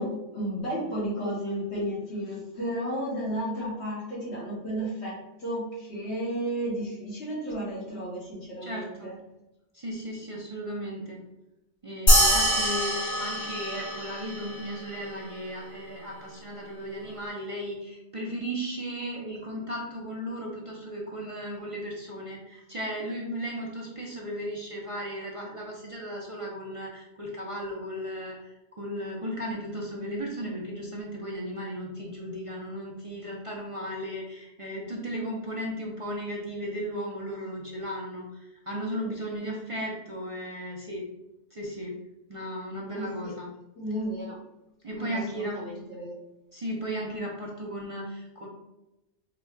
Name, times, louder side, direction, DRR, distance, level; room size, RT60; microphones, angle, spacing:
voice 1, 0.0-9.1 42.9-43.3 43.8-44.4 45.0-46.1, equal, 70° left, -7 dB, 2.0 m, -33 dB
voice 2, 8.6-9.1 9.7-11.2 11.8-41.1 41.5-42.0 42.3-43.5 44.8-45.6 46.5-48.5, equal, 35° right, -3 dB, 0.6 m, -35 dB
sound 1, 12.1-14.8, equal, 45° left, 1.7 m, -24 dB
3.9 x 2.3 x 4.4 m, 0.94 s
omnidirectional pair, 1.2 m